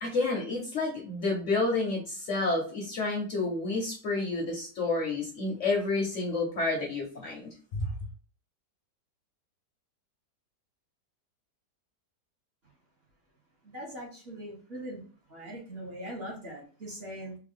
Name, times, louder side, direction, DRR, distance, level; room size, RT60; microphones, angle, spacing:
voice 1, 0.0-7.9, left 3 dB, 55° left, -1 dB, 0.9 m, -30 dB
voice 2, 13.6-15.0 15.3-17.4, right 1 dB, 40° right, -4 dB, 1.1 m, -41 dB
3.4 x 2.3 x 3.5 m, 0.39 s
omnidirectional pair, 1.8 m